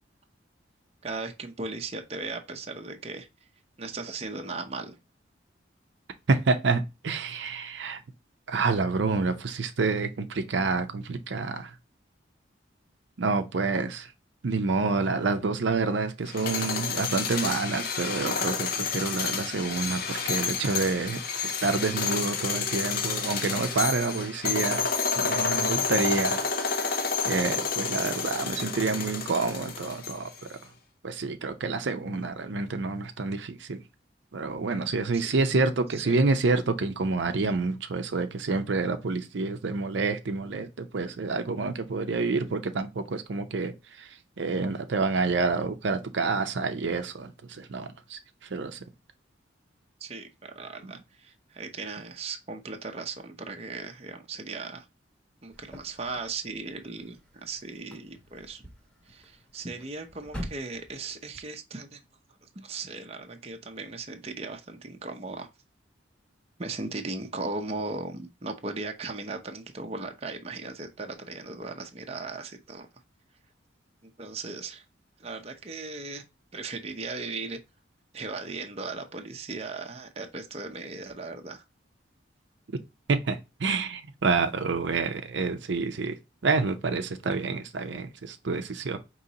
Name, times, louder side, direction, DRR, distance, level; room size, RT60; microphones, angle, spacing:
voice 1, 1.0-3.3 3.8-5.0 35.1-35.3 36.0-36.2 50.0-54.9 55.4-58.6 59.1-62.0 62.4-65.5 66.6-72.9 74.0-74.8 75.2-76.2 76.5-77.6 78.1-81.6, right 3 dB, 30° right, 0.6 m, -37 dB
voice 2, 6.3-8.0 8.5-11.7 13.2-14.1 14.4-24.9 25.1-30.6 31.0-33.8 34.3-44.1 44.4-48.2 48.5-48.8 50.8-50.9 83.1-86.2 86.4-89.0, right 3 dB, 70° right, 0.6 m, -28 dB
sound 1, 16.3-30.4, left 5 dB, 50° left, 0.7 m, -30 dB
sound 2, 55.5-61.4, equal, 5° left, 1.0 m, -45 dB
5.1 x 3.1 x 2.7 m
head